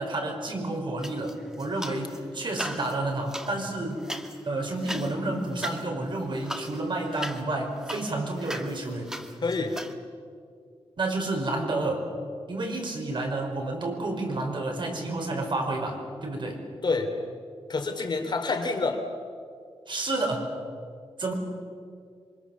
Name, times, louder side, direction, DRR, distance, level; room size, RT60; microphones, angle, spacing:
voice 1, 0.0-4.0 4.4-9.2 11.0-12.1 12.5-16.6 19.9-20.5 21.2-21.3, right 2 dB, 50° right, 2 dB, 5.3 m, -30 dB
sound 1, 1.0-2.2 2.5-9.9, equal, 5° right, 1.5 m, -39 dB
voice 2, 9.4-9.8 16.8-17.1 17.7-19.0, left 3 dB, 45° left, 4 dB, 3.0 m, -27 dB
27.5 x 24.5 x 7.4 m, 2.2 s
wide cardioid pair, 135°, 10 cm